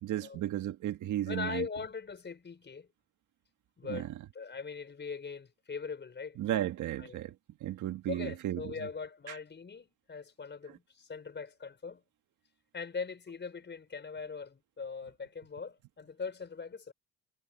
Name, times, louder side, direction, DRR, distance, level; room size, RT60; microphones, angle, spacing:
voice 1, 0.0-1.6 3.9-4.0 6.4-7.3 7.6-8.6, right 12 dB, 80° right, 1.7 m, -34 dB
voice 2, 1.3-2.9 3.8-4.1 4.3-6.4 7.0-7.2 8.1-12.0 12.7-16.9, left 5 dB, 35° left, 5.3 m, -41 dB
cardioid pair, 90°, 30 cm